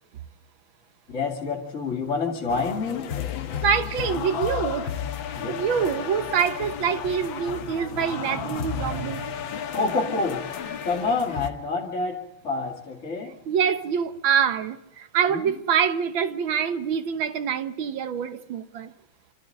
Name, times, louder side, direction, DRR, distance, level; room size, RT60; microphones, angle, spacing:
voice 1, 1.1-3.1 5.3-5.6 9.7-10.4 10.8-13.4 15.3-15.5, left 3 dB, 40° left, 2.5 m, -28 dB
sound 1, 2.5-11.5, left 9 dB, 90° left, 1.9 m, -33 dB
voice 2, 3.6-4.9 5.5-9.4 13.5-18.9, right 7 dB, 85° right, 1.9 m, -25 dB
26.5 x 13.5 x 9.2 m
omnidirectional pair, 2.1 m